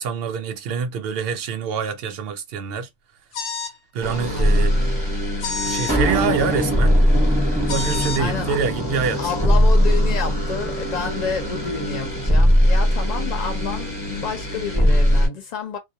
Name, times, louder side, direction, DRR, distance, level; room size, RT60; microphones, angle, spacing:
voice 1, 0.0-2.9 3.9-4.7 5.6-7.0 7.7-9.3, right 6 dB, 60° right, 0.7 m, -25 dB
sound 1, 3.3-3.8 5.4-6.0 7.7-8.2, left 5 dB, 70° left, 1.0 m, -28 dB
sound 2, 4.0-15.3, equal, 5° left, 1.0 m, -20 dB
voice 2, 4.3-5.0 8.2-8.6 9.2-15.8, left 5 dB, 40° left, 0.8 m, -29 dB
2.2 x 2.1 x 2.7 m
omnidirectional pair, 1.3 m